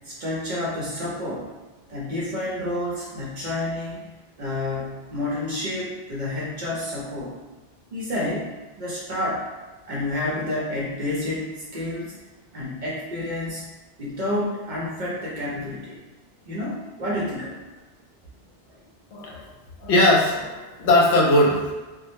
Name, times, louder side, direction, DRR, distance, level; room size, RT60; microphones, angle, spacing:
voice 1, 0.0-1.5 1.9-7.4 7.9-8.5 8.8-9.4 9.9-12.1 12.5-13.7 14.0-16.0 16.5-17.6, left 1 dB, 55° right, -5 dB, 0.6 m, -29 dB
voice 2, 19.1-19.5 19.8-21.7, left 1 dB, 80° left, -2 dB, 0.8 m, -19 dB
2.1 x 2.0 x 2.9 m, 1.2 s
omnidirectional pair, 1.1 m